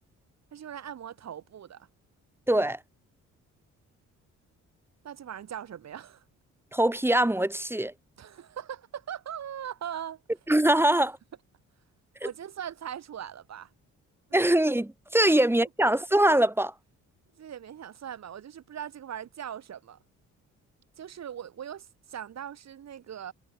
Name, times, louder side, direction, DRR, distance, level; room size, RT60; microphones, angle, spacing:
voice 1, 0.5-1.9 5.0-6.2 8.2-10.2 10.9-11.1 12.2-13.7 14.3-14.4 15.3-15.4 17.4-20.0 21.0-23.3, right 9 dB, 60° right, 4.7 m, -40 dB
voice 2, 2.5-2.8 6.7-7.9 10.5-11.2 12.2-12.3 14.3-16.7, right 1 dB, 10° right, 3.6 m, -23 dB
cardioid pair, 90°, 30 cm